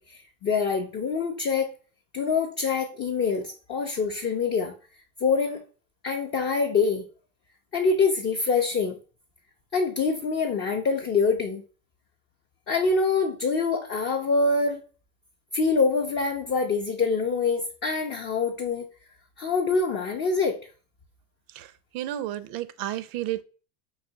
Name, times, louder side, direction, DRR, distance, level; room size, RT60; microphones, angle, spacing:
voice 1, 0.0-1.7 2.1-4.7 5.2-5.6 6.0-7.0 7.7-9.0 9.7-11.6 12.7-14.8 15.5-18.9 19.4-20.6, left 4 dB, 25° left, 3 dB, 0.4 m, -25 dB
voice 2, 21.5-23.4, right 13 dB, 50° right, 14 dB, 0.5 m, -32 dB
4.0 x 2.8 x 2.6 m, 0.37 s
supercardioid pair, 110°, 44 cm